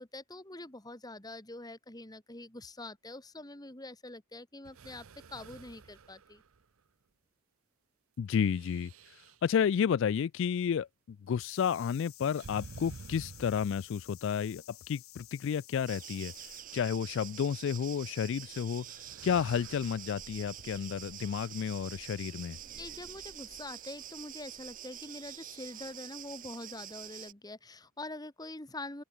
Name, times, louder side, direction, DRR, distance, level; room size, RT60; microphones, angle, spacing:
voice 1, 0.0-6.4 22.8-29.0, left 2 dB, 20° left, 2.1 m, -45 dB
sound 1, 4.6-6.9 8.3-9.5 12.3-14.3 15.6-15.7 16.2-16.8 18.4-18.6 19.0-20.2 21.9-22.8, right 4 dB, 85° right, 0.8 m, -52 dB
voice 2, 8.2-22.6, left 7 dB, 60° left, 0.3 m, -32 dB
sound 2, 11.4-16.6, left 17 dB, 85° left, 1.2 m, -53 dB
sound 3, 15.9-27.3, right 11 dB, 40° right, 0.8 m, -46 dB
open air
head